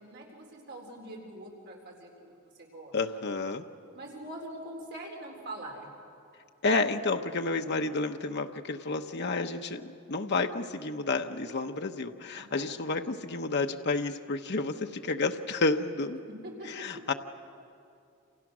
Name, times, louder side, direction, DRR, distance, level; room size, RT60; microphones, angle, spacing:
voice 1, 0.0-2.3 2.6-2.9 3.9-5.9 12.4-12.7 16.4-17.0, right 1 dB, 55° right, 0 dB, 4.1 m, -43 dB
voice 2, 2.9-3.6 6.6-16.2 16.6-17.1, left 3 dB, 55° left, 5 dB, 1.0 m, -30 dB
28.5 x 28.5 x 6.2 m, 2.5 s
head